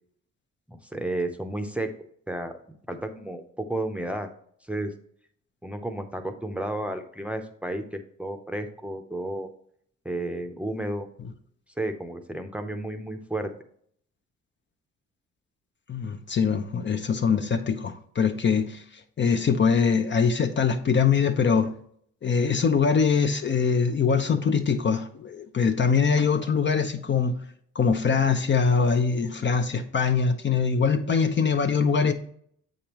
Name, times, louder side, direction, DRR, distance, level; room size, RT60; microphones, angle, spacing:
voice 1, 0.7-1.9 2.3-2.5 2.9-4.3 4.7-4.9 5.6-9.5 10.0-11.1 11.8-13.5, right 1 dB, 5° right, 0.7 m, -32 dB
voice 2, 15.9-18.8 19.2-21.7 22.2-27.4 27.7-32.1, left 6 dB, 40° left, 0.7 m, -23 dB
7.6 x 5.2 x 3.0 m
cardioid pair, 90°, 30 cm